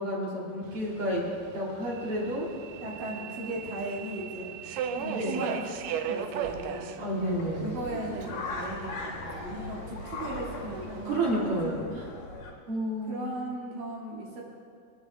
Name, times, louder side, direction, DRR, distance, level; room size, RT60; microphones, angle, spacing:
voice 1, 0.0-2.5 4.9-5.4 7.0-7.8 11.0-12.1 12.7-13.3, right 1 dB, 45° right, -4 dB, 2.6 m, -31 dB
Subway metro underground, 0.6-11.2, right 8 dB, 80° right, 2.1 m, -39 dB
voice 2, 2.8-4.5 5.0-6.9 7.6-11.9 13.1-14.4, right 1 dB, 60° right, -4 dB, 3.4 m, -37 dB
sound 1, 7.2-12.5, left 3 dB, 70° left, 3.9 m, -39 dB
26.5 x 10.5 x 3.3 m, 2.3 s
omnidirectional pair, 4.5 m